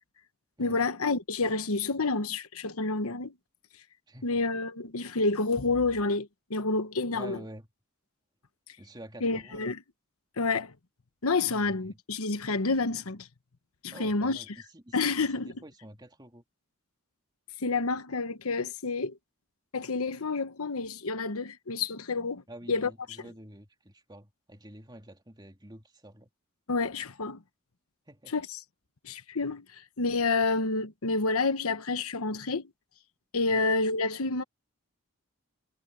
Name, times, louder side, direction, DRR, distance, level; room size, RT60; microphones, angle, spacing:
voice 1, 0.6-3.3 4.2-7.4 9.2-9.8 10.4-10.7 11.2-13.3 13.8-14.4 14.9-15.5 17.6-19.2 19.7-22.4 22.7-22.9 26.7-27.4 28.3-28.4 29.0-29.6 30.0-32.7 33.3-34.4, left 3 dB, 80° left, 1.1 m, -29 dB
voice 2, 4.1-4.5 7.1-7.7 8.8-9.7 11.5-12.0 13.9-16.4 22.5-26.3 28.1-28.3 33.5-33.7, right 1 dB, 20° right, 3.2 m, -48 dB
head